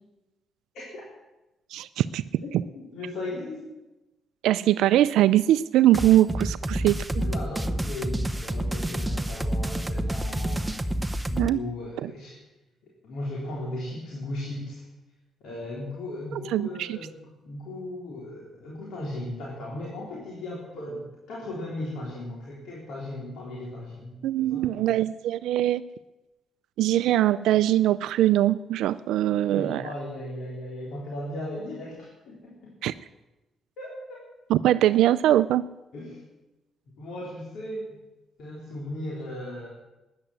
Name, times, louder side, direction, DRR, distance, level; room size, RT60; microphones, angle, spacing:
voice 1, 1.7-2.2 4.4-7.0 11.4-11.6 12.0-12.1 16.5-17.0 24.2-25.8 26.8-29.8 32.8-32.9 34.5-35.7, right 13 dB, 85° right, 13 dB, 0.4 m, -22 dB
voice 2, 2.4-3.6 6.6-6.7 7.2-10.9 11.3-12.4 13.0-14.9 15.4-24.9 29.5-32.7 33.8-34.2 35.9-36.2 37.0-38.1 38.4-39.7, left 1 dB, 75° left, -4 dB, 3.8 m, -37 dB
sound 1, 5.9-11.5, right 1 dB, 10° right, 0.8 m, -29 dB
13.5 x 9.9 x 9.8 m, 1.0 s
cardioid pair, 90°, 0 cm